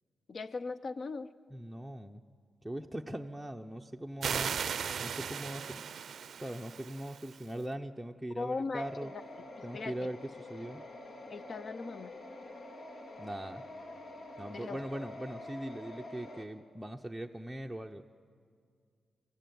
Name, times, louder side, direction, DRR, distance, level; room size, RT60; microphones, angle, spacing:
voice 1, 0.3-1.3 8.4-8.8 9.7-9.9 11.3-12.1 14.5-14.8, left 4 dB, 50° left, 13 dB, 0.7 m, -38 dB
voice 2, 1.5-2.2 2.6-4.6 5.0-5.8 6.4-9.1 9.6-10.8 13.2-13.7 14.4-18.3, right 1 dB, 5° right, 1 dB, 0.6 m, -41 dB
sound 1, 4.2-7.5, right 7 dB, 65° right, 0.5 m, -37 dB
sound 2, 8.8-16.4, left 2 dB, 75° left, 2.1 m, -47 dB
24.5 x 14.5 x 9.3 m, 2.2 s
wide cardioid pair, 115°, 0 cm